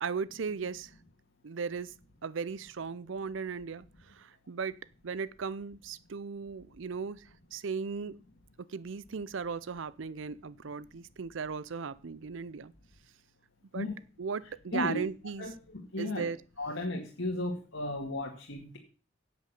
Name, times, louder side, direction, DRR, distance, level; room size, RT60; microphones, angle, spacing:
voice 1, 0.0-0.9 1.4-1.9 2.2-4.8 5.0-8.2 8.7-12.7 13.7-13.9 14.2-15.5 16.0-16.4, right 5 dB, 65° right, 0.5 m, -37 dB
voice 2, 15.4-16.3 16.6-18.8, left 2 dB, 60° left, 2.2 m, -35 dB
9.7 x 8.3 x 6.8 m
head